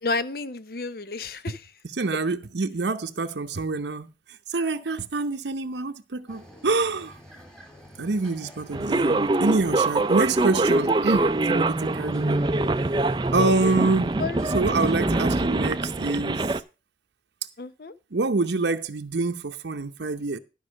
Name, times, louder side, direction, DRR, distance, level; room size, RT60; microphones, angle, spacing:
voice 1, 0.0-1.7 2.1-2.2 14.2-14.4 17.6-17.9, left 3 dB, 55° left, 0.7 m, -31 dB
voice 2, 2.0-4.1 4.5-7.1 8.0-12.4 13.3-14.2 14.5-16.5 18.1-20.4, right 3 dB, 80° right, 0.8 m, -26 dB
sound 1, 6.3-16.2, equal, 5° left, 1.9 m, -49 dB
sound 2, 8.7-16.6, right 2 dB, 25° right, 0.4 m, -24 dB
12.0 x 5.4 x 6.3 m
head